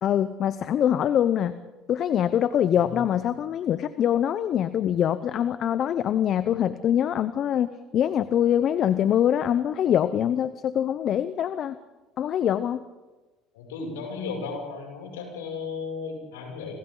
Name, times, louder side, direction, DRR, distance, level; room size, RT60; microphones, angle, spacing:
voice 1, 0.0-1.5 1.9-11.8 12.2-12.8, left 10 dB, 50° left, 13 dB, 0.9 m, -24 dB
voice 2, 13.5-16.8, left 4 dB, 85° left, 1 dB, 6.7 m, -35 dB
28.5 x 26.5 x 4.0 m, 1.2 s
hypercardioid pair, 75°, 0 cm